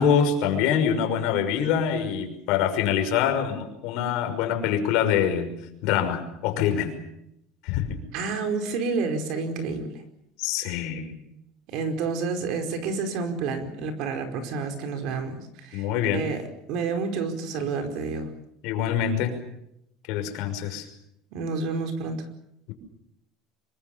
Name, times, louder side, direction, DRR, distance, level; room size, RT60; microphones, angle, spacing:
voice 1, 0.0-5.5 5.8-6.9 7.6-8.0 10.4-11.2 15.7-16.2 18.6-19.3 20.1-20.9, left 8 dB, 60° left, 5 dB, 5.9 m, -25 dB
voice 2, 8.1-9.9 11.7-16.4 16.7-18.3 21.3-22.2, right 4 dB, 55° right, 7 dB, 4.8 m, -29 dB
26.0 x 23.5 x 7.2 m, 0.78 s
cardioid pair, 165°, 0 cm